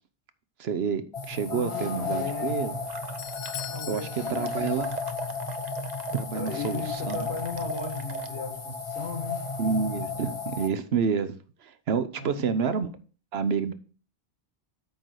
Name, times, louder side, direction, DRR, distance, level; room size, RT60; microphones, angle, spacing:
voice 1, 0.6-1.0 1.3-2.7 3.9-4.9 6.1-7.3 9.6-11.4 11.9-12.9 13.3-13.7, right 6 dB, 70° right, 12 dB, 1.0 m, -28 dB
sound 1, 1.1-10.7, left 4 dB, 30° left, 0.8 m, -34 dB
voice 2, 1.5-2.6 3.7-4.7 6.3-9.4 12.2-12.6, left 4 dB, 85° left, 2 dB, 2.5 m, -36 dB
Doorbell, 2.8-5.2 5.5-5.6 6.3-6.4, left 12 dB, 65° left, 0.7 m, -42 dB
sound 2, 2.9-4.0 4.3-8.3, right 6 dB, 45° right, 0.8 m, -41 dB
9.0 x 4.0 x 6.2 m, 0.39 s
omnidirectional pair, 1.1 m